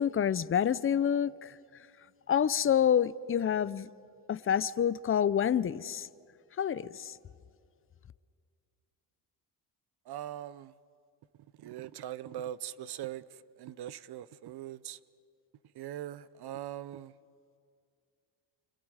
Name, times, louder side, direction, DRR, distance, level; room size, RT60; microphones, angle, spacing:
voice 1, 0.0-1.5 2.3-3.9 4.3-6.1 6.6-7.1, left 9 dB, 30° left, 0.6 m, -28 dB
voice 2, 10.0-10.7 11.6-15.0 15.7-17.1, right 12 dB, 60° right, 0.7 m, -41 dB
30.0 x 27.0 x 4.9 m
cardioid pair, 85°, 43 cm